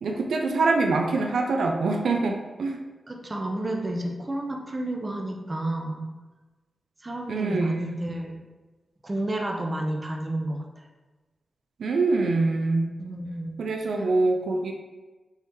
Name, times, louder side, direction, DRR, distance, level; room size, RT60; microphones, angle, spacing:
voice 1, 0.0-2.8 7.3-8.0 11.8-12.9 13.6-14.7, right 3 dB, 85° right, 2 dB, 0.4 m, -24 dB
voice 2, 3.1-6.1 7.0-8.4 9.0-10.8 13.0-13.6, right 1 dB, 25° right, 1 dB, 0.6 m, -31 dB
4.7 x 2.7 x 3.5 m, 1.2 s
wide cardioid pair, 115°, 0 cm